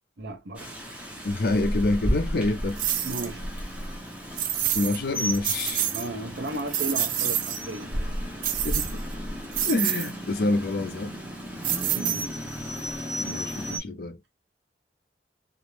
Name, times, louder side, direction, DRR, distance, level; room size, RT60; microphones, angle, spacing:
voice 1, 0.2-0.7 3.0-3.5 5.9-8.1 11.9-12.4, right 2 dB, 75° right, 0.7 m, -35 dB
Rain, 0.5-13.8, equal, 5° right, 0.6 m, -34 dB
voice 2, 1.2-2.8 4.7-5.9 8.6-8.9 9.6-11.1 13.2-14.2, left 2 dB, 55° left, 0.5 m, -27 dB
sound 1, 2.8-3.3 4.4-5.0 5.3-6.1 6.5-7.6 8.4-9.1 9.5-10.1 11.6-12.5, right 10 dB, 50° right, 0.3 m, -27 dB
2.5 x 2.0 x 3.1 m
head